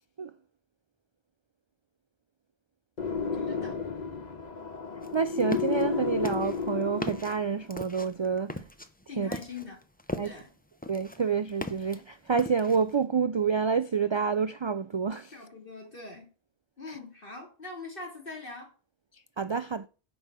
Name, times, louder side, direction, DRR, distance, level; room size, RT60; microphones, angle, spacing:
sound 1, 3.0-7.6, left 6 dB, 45° left, 1.2 m, -32 dB
voice 1, 3.5-3.8 9.1-9.8 10.2-10.5 15.3-16.3 16.8-18.7, left 3 dB, 60° left, 3.2 m, -42 dB
sound 2, 5.0-5.8 6.2-10.5 10.8-12.0 12.4-12.9, left 1 dB, 10° left, 0.7 m, -38 dB
voice 2, 5.1-8.5 9.2-9.3 10.2-10.3 10.9-15.3 19.4-19.9, right 6 dB, 50° right, 0.3 m, -28 dB
9.8 x 5.4 x 6.2 m
omnidirectional pair, 1.0 m